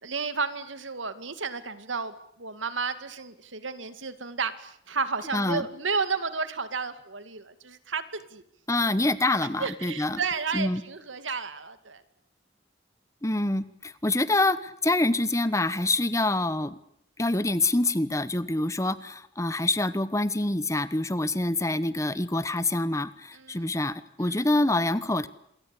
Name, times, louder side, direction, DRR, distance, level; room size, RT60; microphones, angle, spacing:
voice 1, 0.0-8.4 9.6-12.0 21.3-21.4 23.3-23.6 24.2-24.4, right 5 dB, 90° right, 11 dB, 2.4 m, -32 dB
voice 2, 5.3-5.7 8.7-10.2 10.5-10.8 13.2-16.8 17.2-25.3, left 2 dB, 15° left, 15 dB, 1.1 m, -26 dB
27.5 x 23.0 x 8.5 m, 0.69 s
head